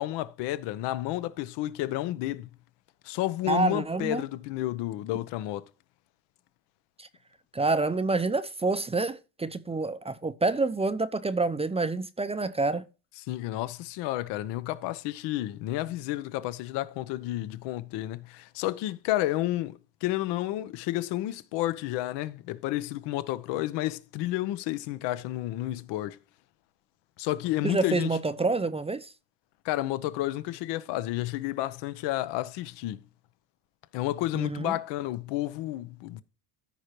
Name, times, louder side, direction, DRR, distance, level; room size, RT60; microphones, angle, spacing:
voice 1, 0.0-2.5 3.0-5.7 13.3-26.2 27.2-28.1 29.6-33.0 33.9-36.2, left 15 dB, 70° left, 0.9 m, -31 dB
voice 2, 3.5-4.2 7.0-7.1 7.5-12.8 27.6-29.1 34.3-34.8, right 3 dB, 15° right, 0.6 m, -27 dB
14.5 x 5.3 x 3.0 m
supercardioid pair, 85°, 44 cm